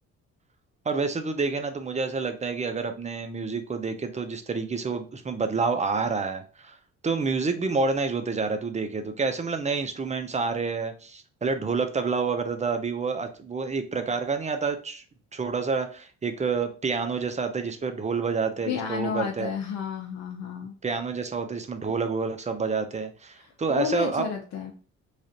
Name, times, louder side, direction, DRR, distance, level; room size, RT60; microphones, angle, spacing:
voice 1, 0.9-6.8 7.0-15.0 15.3-19.5 20.8-24.3, right 4 dB, 25° right, 8 dB, 0.5 m, -28 dB
voice 2, 18.7-20.7 23.4-24.7, left 7 dB, 60° left, 1 dB, 0.7 m, -31 dB
3.2 x 2.4 x 2.7 m, 0.38 s
cardioid pair, 90°, 30 cm